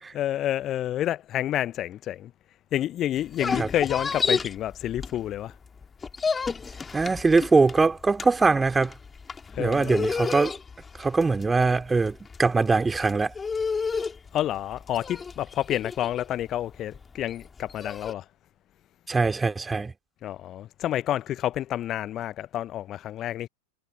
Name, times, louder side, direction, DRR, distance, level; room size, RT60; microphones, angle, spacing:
voice 1, 0.1-2.3 2.7-5.5 9.5-10.1 14.3-18.2 20.2-23.5, left 12 dB, 30° left, 1.0 m, -29 dB
sound 1, 3.2-5.5 5.8-18.1, left 5 dB, 15° left, 3.7 m, -31 dB
voice 2, 6.9-8.9 9.6-10.5 11.0-13.3 19.1-19.9, right 4 dB, 10° right, 2.8 m, -22 dB
figure-of-eight pair, 90°, 0 cm